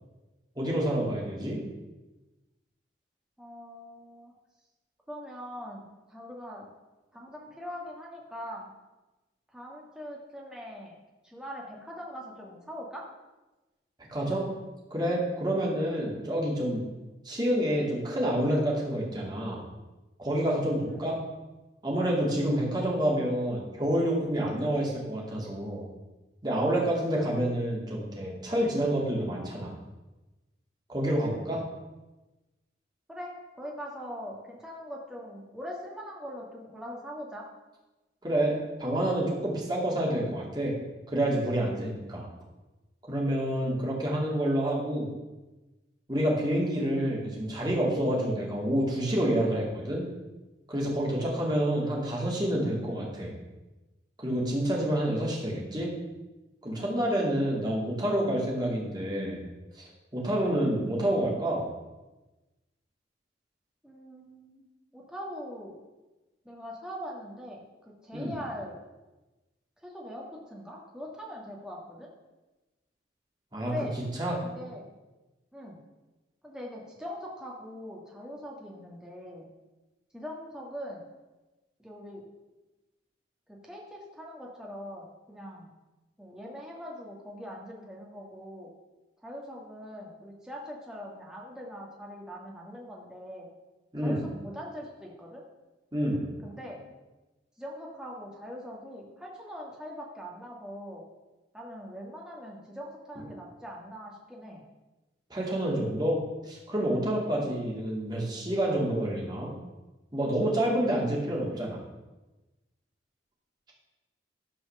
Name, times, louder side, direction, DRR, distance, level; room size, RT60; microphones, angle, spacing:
voice 1, 0.6-1.6 14.1-14.5 14.9-16.9 17.2-19.6 20.2-21.2 21.8-25.8 26.4-29.7 30.9-31.6 38.2-40.7 41.1-42.3 43.1-45.1 46.1-50.1 50.7-53.3 54.2-55.9 56.6-59.4 59.7-59.8 60.1-61.7 68.1-68.3 73.5-73.7 74.2-74.4 93.9-94.2 95.9-96.2 105.3-106.2 106.5-109.5 110.1-111.8, right 1 dB, 20° right, -3 dB, 2.5 m, -28 dB
voice 2, 3.4-4.3 5.1-6.7 7.1-8.7 9.5-10.9 11.2-13.0 15.7-15.9 20.9-21.1 31.2-31.7 33.1-37.4 63.8-64.6 64.9-65.7 66.4-68.8 69.8-72.1 73.6-74.0 74.4-74.9 75.5-75.8 76.4-79.5 80.1-81.0 81.8-82.3 83.5-85.7 86.2-88.7 89.2-93.5 94.0-95.4 96.4-96.9 97.6-101.1 101.5-104.6 107.3-107.5, equal, 5° right, -3 dB, 1.8 m, -42 dB
12.0 x 4.8 x 6.6 m, 1.1 s
head